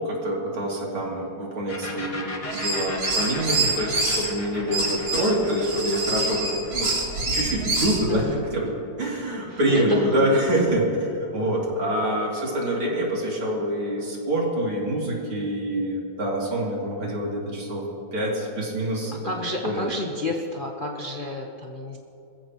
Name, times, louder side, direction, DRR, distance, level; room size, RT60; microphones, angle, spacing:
voice 1, 0.0-6.9 7.3-8.3 8.5-8.7 9.0-17.8 18.1-19.3 19.6-19.9, right 1 dB, 85° right, -3 dB, 3.8 m, -26 dB
sound 1, 1.7-9.2, left 2 dB, 20° left, 1.3 m, -38 dB
sound 2, 2.5-4.3 4.7-8.0, right 2 dB, 70° right, 3.9 m, -26 dB
voice 2, 8.1-8.5 9.5-10.1 19.2-22.0, left 2 dB, 35° left, -1 dB, 0.8 m, -31 dB
26.5 x 15.0 x 3.0 m, 2.7 s
omnidirectional pair, 2.3 m